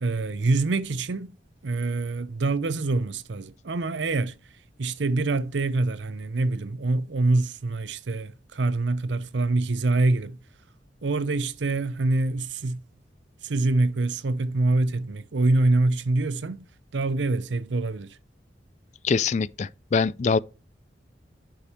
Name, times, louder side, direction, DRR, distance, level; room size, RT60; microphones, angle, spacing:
voice 1, 0.0-1.3 1.6-4.4 4.8-10.4 11.0-12.8 13.4-16.6 16.9-18.2, right 2 dB, 85° right, 0.6 m, -25 dB
voice 2, 19.0-20.4, left 5 dB, 40° left, 0.3 m, -24 dB
8.9 x 5.2 x 4.3 m
head